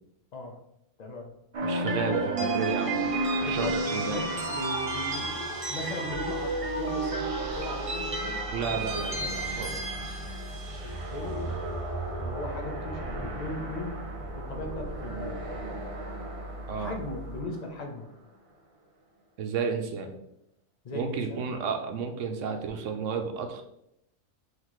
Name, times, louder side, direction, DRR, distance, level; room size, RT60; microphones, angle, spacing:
voice 1, 1.0-1.3 3.4-8.4 10.8-11.6 12.2-14.0 14.3-15.4 16.7-18.1 20.8-21.5, left 1 dB, 45° left, 2 dB, 0.6 m, -38 dB
sound 1, 1.5-17.7, right 2 dB, 45° right, 0.4 m, -33 dB
voice 2, 1.6-3.1 3.4-4.2 8.5-9.9 16.7-16.9 19.4-20.1 20.9-23.6, right 5 dB, 70° right, 5 dB, 0.9 m, -32 dB
sound 2, 6.1-17.4, equal, 15° right, 0.7 m, -42 dB
5.8 x 2.9 x 3.0 m, 0.79 s
omnidirectional pair, 1.4 m